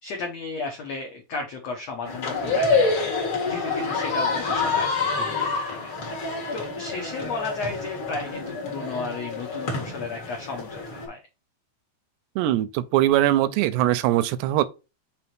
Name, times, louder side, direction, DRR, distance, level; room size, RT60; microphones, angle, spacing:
voice 1, 0.0-3.1 3.5-5.9 6.5-11.2, left 4 dB, 80° left, 1.5 m, -34 dB
sound 1, 2.1-11.1, left 4 dB, 50° left, 1.7 m, -27 dB
voice 2, 12.4-14.6, right 14 dB, 85° right, 2.7 m, -21 dB
6.1 x 3.5 x 4.4 m
omnidirectional pair, 4.7 m